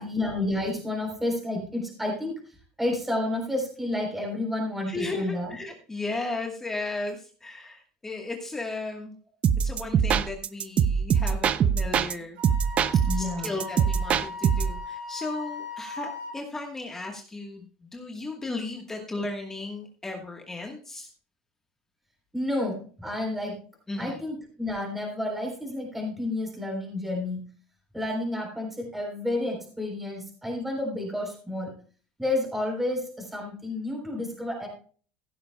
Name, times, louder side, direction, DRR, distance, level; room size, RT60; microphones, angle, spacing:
voice 1, 0.0-5.6 13.1-13.5 22.3-23.6 24.0-27.4 27.9-31.7 32.2-34.7, left 1 dB, 5° right, -1 dB, 3.7 m, -30 dB
voice 2, 4.9-9.1 9.6-12.4 12.9-21.1 23.9-24.2, left 2 dB, 10° left, 2 dB, 1.3 m, -35 dB
sound 1, 9.4-12.1 12.4-14.8, right 7 dB, 30° right, 0.5 m, -23 dB
Wind instrument woodwind instrument, 12.4-16.3, left 3 dB, 85° right, 5.5 m, -38 dB
15.5 x 12.0 x 2.2 m, 0.42 s
cardioid pair, 150°, 4 cm